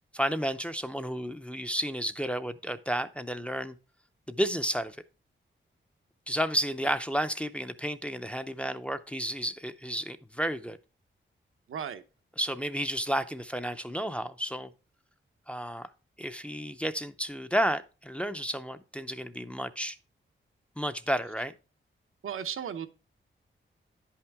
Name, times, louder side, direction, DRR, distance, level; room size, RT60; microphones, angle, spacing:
voice 1, 0.1-3.7 4.3-5.0 6.3-10.8 12.4-14.7 15.5-15.9 16.2-20.0 20.8-21.5, equal, 5° left, 0.4 m, -32 dB
voice 2, 11.7-12.0 22.2-22.9, right 8 dB, 90° right, 0.8 m, -35 dB
10.5 x 5.8 x 3.4 m
wide cardioid pair, 155°, 21 cm